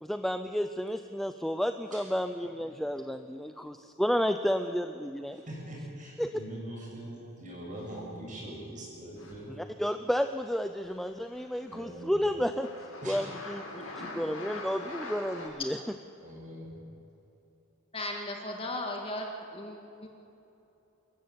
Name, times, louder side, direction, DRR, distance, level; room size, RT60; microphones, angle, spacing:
voice 1, 0.0-5.4 6.2-6.4 9.5-12.7 13.1-15.8, equal, ahead, 8 dB, 0.5 m, -31 dB
voice 2, 5.3-9.7 11.7-12.2 13.0-13.2 14.0-14.2 16.2-16.8, right 1 dB, 35° right, -2 dB, 6.7 m, -42 dB
sound 1, 7.7-8.2 9.1-9.4 10.4-10.6 10.8-12.0 12.3-15.5, left 2 dB, 75° left, 6.2 m, -44 dB
voice 3, 17.9-19.3 19.5-20.1, left 1 dB, 25° left, 1 dB, 2.1 m, -36 dB
25.5 x 15.0 x 8.0 m, 2.9 s
head